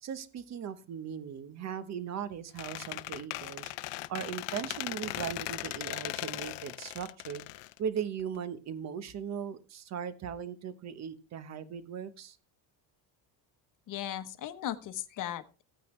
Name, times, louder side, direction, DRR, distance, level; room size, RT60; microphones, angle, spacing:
voice 1, 0.0-3.7 4.1-7.4 7.8-12.4, right 8 dB, 35° right, 12 dB, 1.1 m, -38 dB
Squeak, 2.6-8.4, left 18 dB, 65° left, 0.7 m, -38 dB
voice 2, 13.9-15.6, left 11 dB, 40° left, 10 dB, 1.1 m, -37 dB
15.5 x 9.1 x 3.2 m, 0.33 s
cardioid pair, 180°, 47 cm